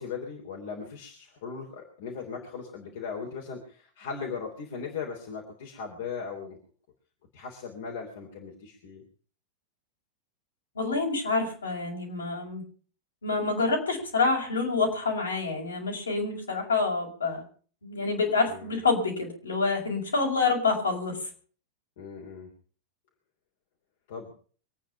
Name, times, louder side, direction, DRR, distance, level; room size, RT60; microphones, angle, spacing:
voice 1, 0.0-6.6 7.3-9.0 18.5-18.7 22.0-22.5 24.1-24.3, left 5 dB, 55° left, 0 dB, 3.4 m, -38 dB
voice 2, 10.8-12.6 13.2-17.4 17.8-21.3, left 4 dB, 75° left, 0 dB, 5.3 m, -27 dB
24.5 x 9.2 x 5.7 m, 0.43 s
figure-of-eight pair, 90°, 0 cm